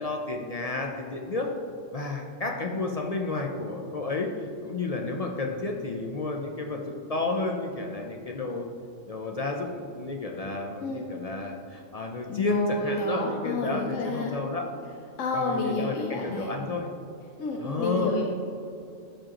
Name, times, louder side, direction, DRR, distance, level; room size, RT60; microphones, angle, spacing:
voice 1, 0.0-1.5 1.9-8.7 9.1-14.7 15.3-16.9 17.6-18.1, left 3 dB, 55° left, 1 dB, 0.4 m, -31 dB
voice 2, 12.3-14.4 15.2-16.5 17.4-18.3, left 2 dB, 80° left, 0 dB, 1.1 m, -30 dB
12.0 x 5.0 x 2.9 m, 2.6 s
omnidirectional pair, 1.3 m